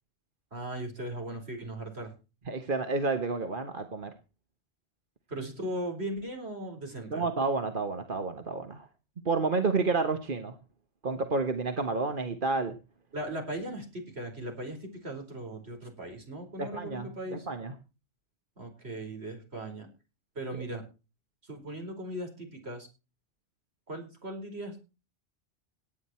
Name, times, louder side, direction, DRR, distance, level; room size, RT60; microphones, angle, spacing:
voice 1, 0.5-2.1 5.3-7.2 13.1-17.5 18.6-19.9 20.3-20.8 21.4-22.9 23.9-24.8, right 1 dB, 70° right, 3 dB, 5.0 m, -38 dB
voice 2, 2.5-4.1 7.1-8.9 9.2-10.5 11.0-12.7 16.6-17.7, right 3 dB, 50° right, 8 dB, 1.5 m, -30 dB
18.0 x 9.7 x 4.4 m, 0.32 s
omnidirectional pair, 1.1 m